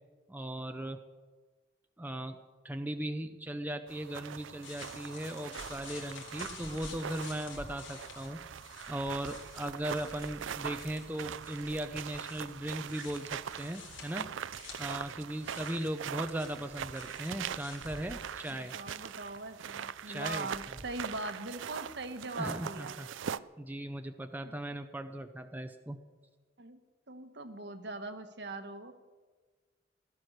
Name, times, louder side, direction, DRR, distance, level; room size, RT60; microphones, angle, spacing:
voice 1, 0.3-1.0 2.0-2.4 2.6-8.4 8.9-14.3 14.8-18.7 20.1-20.5 22.4-23.1 23.6-26.0, right 1 dB, 10° right, 7 dB, 0.6 m, -38 dB
sound 1, 3.9-23.4, right 8 dB, 80° right, 0.4 m, -42 dB
sound 2, 4.6-19.4 20.5-21.2, left 4 dB, 80° left, 3.9 m, -51 dB
voice 2, 18.6-22.9 24.4-24.5 26.6-26.8 27.1-28.9, right 2 dB, 60° right, 8 dB, 1.3 m, -41 dB
16.5 x 12.5 x 6.6 m, 1.4 s
head